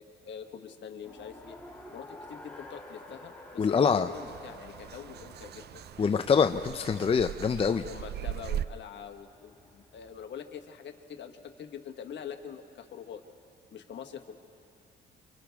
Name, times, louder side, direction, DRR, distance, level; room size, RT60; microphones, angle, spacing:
voice 1, 0.0-1.5 1.9-5.8 7.8-13.2 13.7-14.3, left 8 dB, 65° left, 5 dB, 1.5 m, -44 dB
Race car auto racing, 1.0-10.1, left 2 dB, 5° left, 2.6 m, -51 dB
voice 2, 3.6-4.1 6.0-7.9, left 6 dB, 30° left, 8 dB, 0.5 m, -25 dB
sound 1, 4.1-8.7, right 11 dB, 55° right, 0.5 m, -39 dB
30.0 x 25.0 x 3.5 m, 2.5 s
cardioid pair, 90°, 20 cm